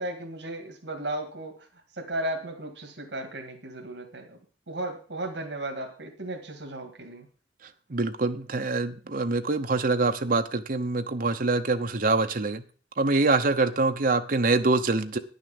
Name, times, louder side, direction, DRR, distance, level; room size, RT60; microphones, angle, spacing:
voice 1, 0.0-4.4 4.7-7.3, right 1 dB, 80° right, 1.9 m, -35 dB
voice 2, 7.9-12.6 13.0-15.2, right 3 dB, 50° right, 0.9 m, -25 dB
9.9 x 6.4 x 7.1 m
head